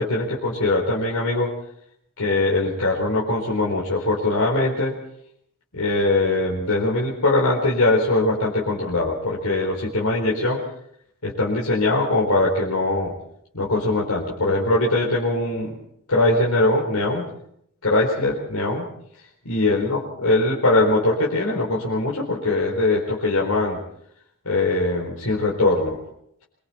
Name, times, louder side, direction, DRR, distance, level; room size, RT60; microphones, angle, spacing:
voice 1, 0.0-1.5 2.2-4.9 5.7-10.6 11.2-13.1 13.5-15.8 16.1-17.3 17.8-18.9 19.4-23.8 24.4-26.0, left 2 dB, 85° left, -4 dB, 4.3 m, -21 dB
25.5 x 24.0 x 4.3 m, 0.72 s
head